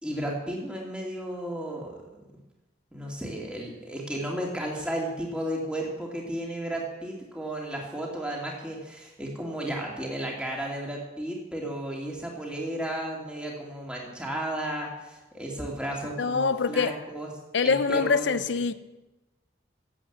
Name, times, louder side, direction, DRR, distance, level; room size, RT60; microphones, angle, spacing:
voice 1, 0.0-2.0 2.9-17.3 17.6-18.4, right 1 dB, 5° right, 2.7 m, -33 dB
voice 2, 16.2-16.9 17.5-18.7, left 5 dB, 80° left, 0.6 m, -24 dB
16.0 x 8.0 x 7.4 m
head